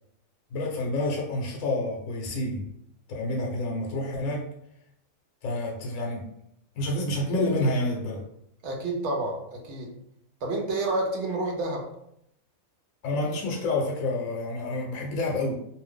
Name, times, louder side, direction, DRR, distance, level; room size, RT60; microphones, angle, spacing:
voice 1, 0.5-2.6 3.1-4.5 5.4-6.3 6.8-8.3 13.0-15.5, left 2 dB, 70° left, -1 dB, 1.1 m, -28 dB
voice 2, 8.6-9.9 10.4-11.9, right 2 dB, 60° right, 0 dB, 0.9 m, -29 dB
2.6 x 2.4 x 3.5 m, 0.75 s
omnidirectional pair, 1.6 m